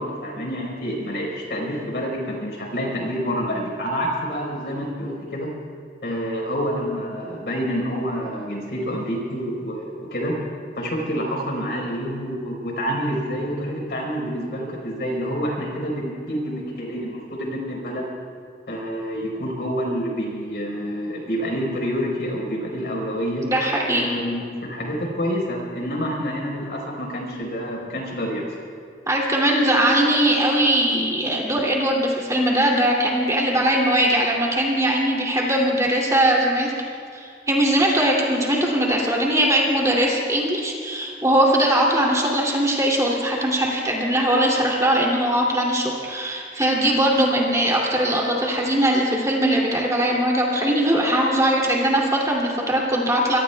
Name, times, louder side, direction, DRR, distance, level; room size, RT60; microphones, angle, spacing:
voice 1, 0.0-5.5 6.0-10.3 10.7-18.1 18.7-23.5 23.9-28.5, equal, 65° left, -1 dB, 4.8 m, -28 dB
voice 2, 23.5-24.1 29.1-36.7 37.1-53.4, right 1 dB, 20° right, -3 dB, 2.8 m, -20 dB
24.5 x 24.0 x 2.4 m, 2.3 s
head